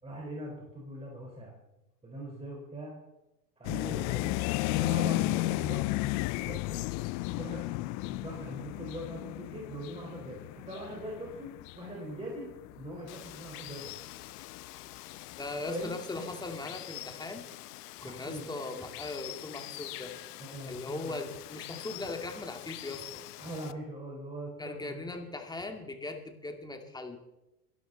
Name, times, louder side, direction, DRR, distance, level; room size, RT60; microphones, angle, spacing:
voice 1, 0.0-1.5 2.0-2.9 3.6-6.8 7.4-12.5 12.8-13.9 15.7-16.3 18.0-18.5 20.4-21.2 23.3-25.0, right 1 dB, 10° right, -3 dB, 4.6 m, -42 dB
sound 1, 3.6-14.6 15.1-15.5 15.8-15.9, left 21 dB, 40° left, 0.5 m, -33 dB
Water, 13.1-23.7, left 16 dB, 75° left, 0.9 m, -45 dB
voice 2, 15.4-17.5 18.0-20.1 20.7-23.2 24.6-27.2, left 2 dB, 10° left, 5 dB, 2.2 m, -39 dB
22.5 x 12.5 x 4.1 m, 0.97 s
hypercardioid pair, 120°, 47 cm